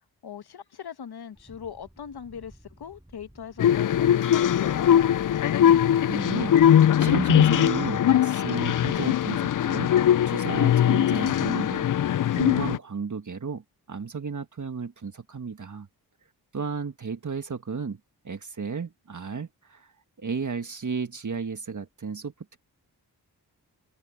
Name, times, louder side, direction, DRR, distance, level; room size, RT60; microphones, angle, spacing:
voice 1, 0.2-4.9, left 8 dB, 75° left, 1.4 m, -40 dB
sound 1, 1.3-12.7, right 1 dB, 10° right, 6.5 m, -53 dB
sound 2, 3.6-12.8, left 10 dB, 55° left, 0.5 m, -21 dB
voice 2, 6.1-9.9 10.3-11.9 12.3-15.9 16.5-22.6, right 5 dB, 50° right, 1.7 m, -33 dB
cardioid pair, 45°, 39 cm